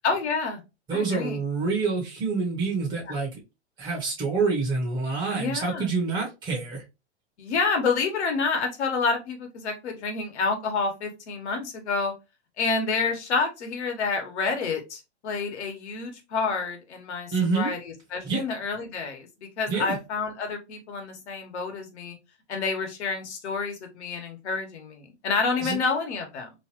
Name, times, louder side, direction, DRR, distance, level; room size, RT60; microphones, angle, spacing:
voice 1, 0.0-0.6 0.9-1.4 5.3-5.9 7.4-12.1 12.6-22.1 22.5-26.5, left 4 dB, 70° left, 1.2 m, -28 dB
voice 2, 0.9-3.3 3.8-6.8 17.3-17.7 18.2-18.4 19.7-20.0 25.6-25.8, right 4 dB, 15° right, 0.7 m, -27 dB
2.9 x 2.3 x 2.9 m
hypercardioid pair, 135°, 35 cm